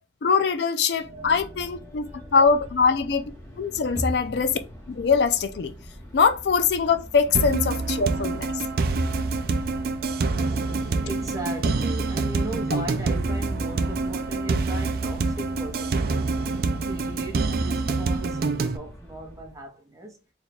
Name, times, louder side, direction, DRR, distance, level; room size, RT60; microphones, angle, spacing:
voice 1, 0.2-2.1 2.3-3.2 3.6-4.6 4.9-5.7 6.1-8.5, left 5 dB, 65° left, 0.4 m, -22 dB
voice 2, 0.7-3.0 3.9-4.4 10.3-20.2, right 1 dB, 20° right, 0.8 m, -38 dB
sound 1, 0.9-19.7, equal, 15° left, 1.0 m, -43 dB
sound 2, 7.3-18.8, right 3 dB, 55° right, 0.4 m, -26 dB
3.3 x 2.3 x 4.0 m
head